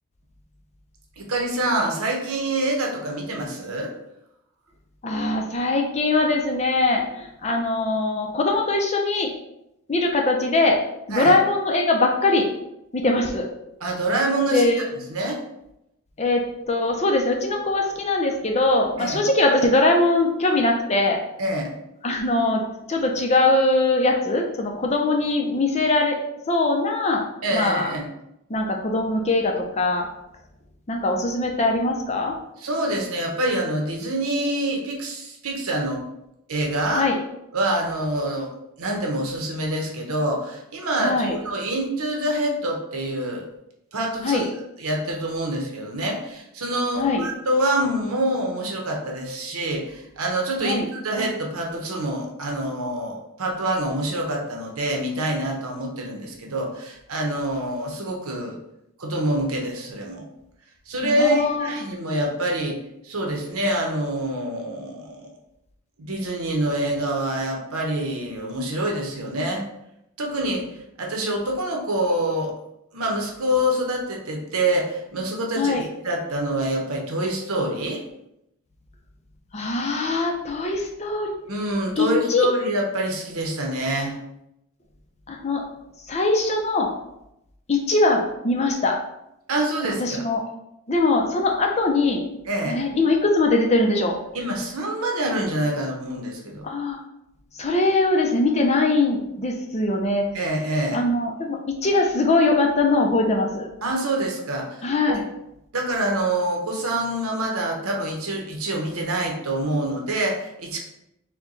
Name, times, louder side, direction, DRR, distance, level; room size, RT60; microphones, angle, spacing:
voice 1, 1.2-3.9 11.1-11.4 13.8-14.6 15.1-15.4 19.0-19.2 21.4-21.7 27.4-28.1 32.6-36.0 36.5-37.1 37.5-38.5 38.8-43.4 43.9-44.5 44.8-58.6 59.0-60.3 60.9-62.8 63.0-65.3 66.0-69.6 70.2-70.7 71.0-72.5 72.9-78.0 81.5-84.2 89.5-90.2 92.5-92.8 94.3-96.6 100.3-101.0 103.8-105.2 105.7-110.8, right 1 dB, 80° right, 0 dB, 0.9 m, -26 dB
voice 2, 5.0-9.3 9.9-10.8 11.1-12.5 12.9-13.4 14.5-14.8 16.2-21.2 22.0-22.6 22.9-26.2 26.5-27.2 27.5-27.9 28.5-30.1 30.9-32.3 37.0-37.2 41.0-41.3 44.2-44.4 47.0-47.2 50.6-50.9 61.0-61.7 75.6-75.9 79.5-81.3 82.0-82.5 85.3-85.6 86.1-86.9 87.7-89.0 89.8-90.4 90.9-92.2 92.6-94.2 96.6-97.0 97.6-100.2 100.9-103.7 104.8-105.2, left 2 dB, 30° left, 2 dB, 0.5 m, -21 dB
4.5 x 2.2 x 3.8 m, 0.83 s
head